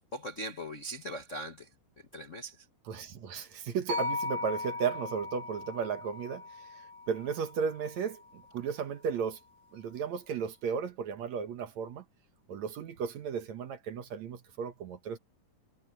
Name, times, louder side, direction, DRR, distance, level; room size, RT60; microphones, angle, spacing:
voice 1, 0.0-1.7 2.1-2.5, right 1 dB, 35° left, 1.2 m, -40 dB
voice 2, 2.9-9.4 9.7-12.0 12.5-15.2, right 6 dB, 60° right, 2.5 m, -35 dB
sound 1, 3.9-8.1, left 3 dB, 35° right, 3.5 m, -38 dB
omnidirectional pair, 3.8 m